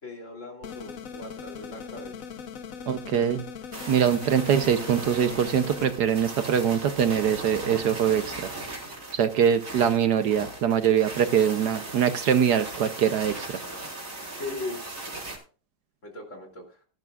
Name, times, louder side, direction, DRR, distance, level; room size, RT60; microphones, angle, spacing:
voice 1, 0.0-2.1 3.8-3.9 14.4-15.0 16.0-16.8, left 2 dB, 40° left, 1 dB, 3.5 m, -39 dB
sound 1, 0.6-5.9, left 7 dB, 55° left, 1.1 m, -40 dB
voice 2, 2.9-3.4 3.9-8.5 9.1-13.6, right 8 dB, 70° right, 9 dB, 1.3 m, -23 dB
sound 2, 3.7-15.4, right 2 dB, 45° right, 4.4 m, -38 dB
18.0 x 11.0 x 2.4 m, 0.38 s
omnidirectional pair, 2.0 m